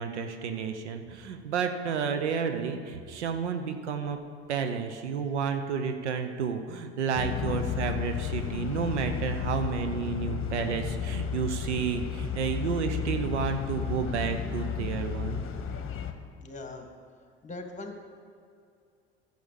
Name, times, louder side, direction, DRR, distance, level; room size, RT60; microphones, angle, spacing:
voice 1, 0.0-4.2 4.5-15.4, right 6 dB, 85° right, 7 dB, 0.9 m, -31 dB
sound 1, 7.1-16.1, left 8 dB, 40° left, 1.2 m, -33 dB
voice 2, 16.4-16.9 17.4-18.0, left 2 dB, 20° left, 4 dB, 1.9 m, -40 dB
11.5 x 6.9 x 7.1 m, 2.3 s
hypercardioid pair, 70°, 34 cm